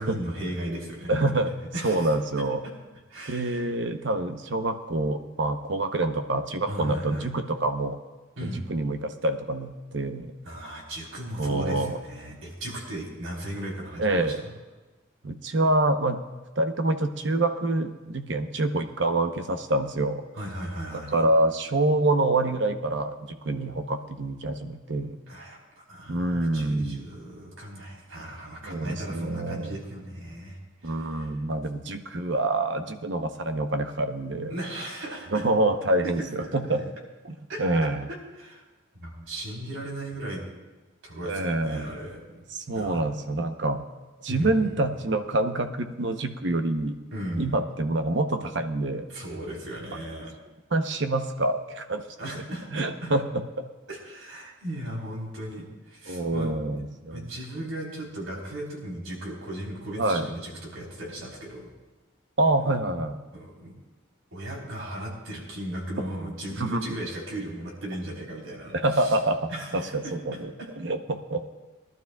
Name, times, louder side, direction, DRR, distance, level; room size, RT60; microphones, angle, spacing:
voice 1, 0.0-1.4 1.7-2.1 3.1-3.7 6.7-7.3 8.4-8.7 10.5-14.5 20.3-21.2 25.3-31.3 34.5-35.5 36.0-36.1 36.4-36.8 37.5-38.6 39.0-40.4 41.0-42.4 42.7-43.1 44.3-45.0 47.1-47.5 49.1-50.3 52.2-53.1 53.9-56.6 57.1-61.7 62.6-62.8 63.3-63.7 64.3-69.2 69.5-69.9, right 1 dB, 80° right, -2 dB, 3.9 m, -37 dB
voice 2, 1.1-1.5 1.8-2.6 3.3-8.0 8.4-10.3 11.4-12.0 14.0-14.4 15.2-16.2 16.6-20.2 21.1-25.2 26.1-27.0 28.6-29.7 30.8-34.5 35.3-36.8 37.6-38.0 41.3-41.9 42.5-43.8 44.2-46.9 47.4-49.1 50.7-52.0 52.7-53.2 53.6-53.7 56.1-57.3 60.0-60.3 62.4-63.2 66.5-66.9 68.7-70.5 70.8-71.4, right 2 dB, 60° right, 7 dB, 0.9 m, -26 dB
22.5 x 12.0 x 2.3 m, 1.2 s
head